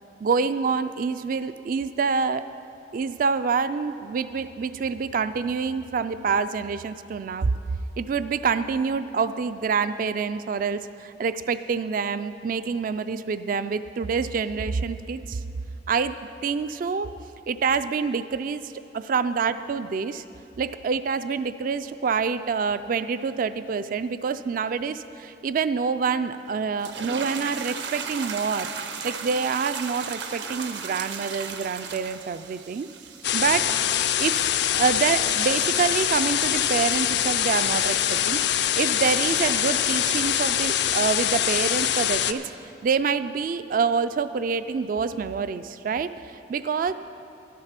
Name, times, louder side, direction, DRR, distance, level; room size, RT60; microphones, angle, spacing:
voice 1, 0.2-2.4 2.9-7.5 8.0-15.4 15.9-16.1 16.4-17.1 17.5-18.6 18.9-20.2 20.6-28.7 29.0-32.9 33.3-33.7 34.2-38.4 38.7-42.4 42.8-46.1 46.5-46.9, right 5 dB, 45° right, 12 dB, 0.3 m, -26 dB
sound 1, 26.8-37.0, right 5 dB, 65° right, 0.8 m, -37 dB
sound 2, 33.2-42.3, left 10 dB, 65° left, 0.5 m, -24 dB
12.0 x 11.0 x 5.8 m, 2.8 s
head